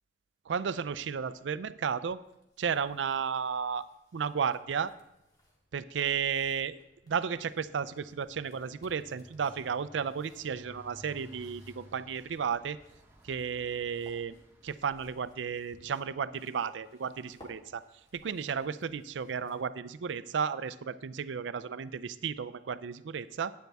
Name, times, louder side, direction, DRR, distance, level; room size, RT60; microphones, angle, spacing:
voice 1, 0.5-2.2 2.6-3.8 4.1-4.9 5.7-6.8 7.1-12.8 13.2-14.4 14.6-17.8 18.1-23.5, right 6 dB, 85° right, 15 dB, 0.4 m, -33 dB
sound 1, 2.1-19.9, equal, 20° left, 2.1 m, -63 dB
sound 2, 4.9-5.1 5.4-18.5, equal, 15° right, 1.3 m, -58 dB
12.0 x 9.3 x 3.5 m, 0.88 s
head